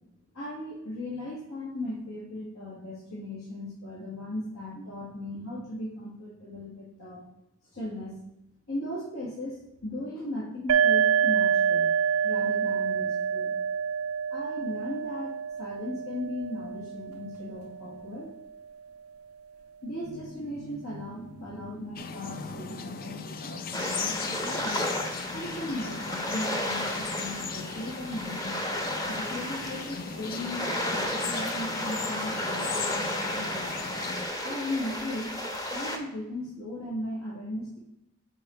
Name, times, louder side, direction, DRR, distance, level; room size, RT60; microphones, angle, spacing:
voice 1, 0.3-7.2 7.7-8.2 8.7-11.9 12.2-13.5 14.3-18.3 19.8-24.9 25.3-28.6 29.1-33.7 34.4-35.3 35.6-37.8, left 1 dB, 70° left, -5 dB, 1.6 m, -37 dB
sound 1, 10.7-18.2, right 7 dB, 70° right, 0.3 m, -27 dB
sound 2, 22.0-34.3, left 5 dB, 45° left, 0.5 m, -38 dB
sound 3, 23.7-36.0, left 1 dB, 20° left, 0.9 m, -33 dB
6.9 x 4.3 x 4.2 m, 0.88 s
head